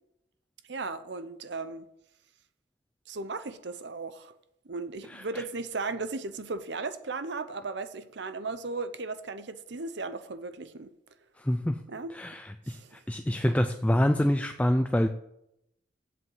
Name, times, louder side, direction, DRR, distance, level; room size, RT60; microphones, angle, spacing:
voice 1, 0.7-1.9 3.1-4.3 4.7-10.9 11.9-12.1 12.7-13.0, right 3 dB, 65° right, 0.7 m, -36 dB
voice 2, 5.1-5.4 11.4-11.8 12.1-15.1, left 1 dB, 5° left, 0.3 m, -26 dB
7.9 x 7.8 x 7.7 m
head